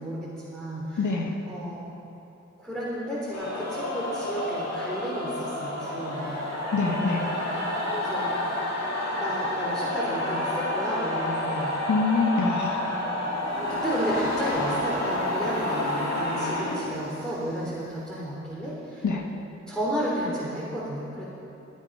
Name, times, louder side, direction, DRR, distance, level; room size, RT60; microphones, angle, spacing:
voice 1, 0.0-1.0 1.5-1.9 2.6-6.5 7.9-8.4 9.1-11.8 13.6-19.0 19.7-21.3, equal, ahead, -8 dB, 3.5 m, -32 dB
voice 2, 1.0-1.3 6.7-7.3 11.9-13.0 19.0-19.3, left 3 dB, 75° left, 2 dB, 1.5 m, -25 dB
sound 1, 3.3-17.5, left 1 dB, 60° left, 3.0 m, -29 dB
14.5 x 10.5 x 5.5 m, 3.0 s
cardioid pair, 45°, 30 cm